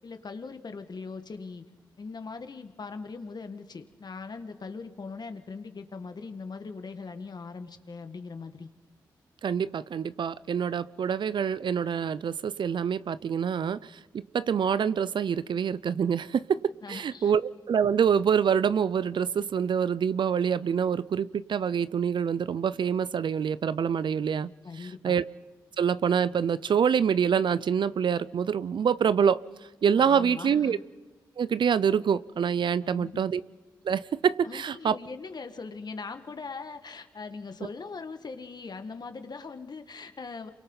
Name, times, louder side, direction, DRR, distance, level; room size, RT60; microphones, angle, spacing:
voice 1, 0.0-1.6 2.0-8.7 16.8-17.3 24.6-25.2 30.0-30.8 32.8-33.2 34.4-40.5, left 4 dB, 50° left, 1.7 m, -40 dB
voice 2, 9.4-16.6 16.9-24.5 25.0-25.2 25.8-29.4 29.8-30.8 31.4-33.4 33.8-35.0, right 7 dB, 65° right, 0.5 m, -26 dB
28.0 x 23.5 x 4.0 m
supercardioid pair, 45°, 9 cm